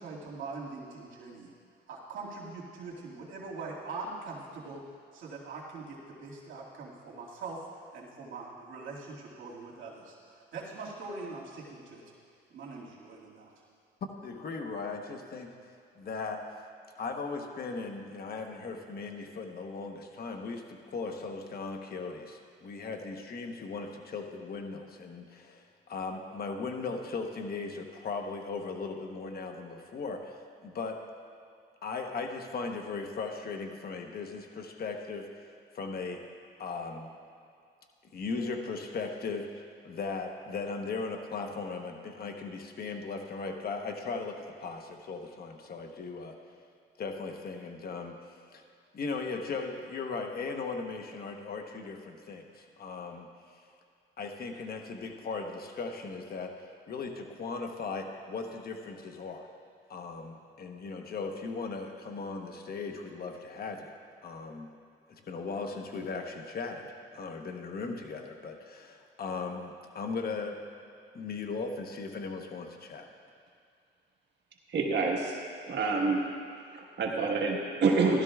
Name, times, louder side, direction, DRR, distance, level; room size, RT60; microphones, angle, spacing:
voice 1, 0.0-1.5 1.9-4.8 5.1-12.0 12.5-13.6, right 3 dB, 80° right, -4 dB, 2.2 m, -42 dB
voice 2, 14.2-15.5 16.0-16.5 17.0-31.0 31.8-35.5 35.7-36.2 36.6-37.1 38.1-46.4 47.0-48.2 48.5-48.6 48.9-53.3 54.2-56.5 56.9-59.5 59.9-64.7 65.1-70.7 71.1-73.1, left 4 dB, 50° left, 4 dB, 1.0 m, -38 dB
voice 3, 74.7-75.4 75.7-76.2 76.7-78.2, right 4 dB, 60° right, -1 dB, 1.5 m, -27 dB
16.0 x 12.0 x 2.4 m, 2.3 s
cardioid pair, 90°, 20 cm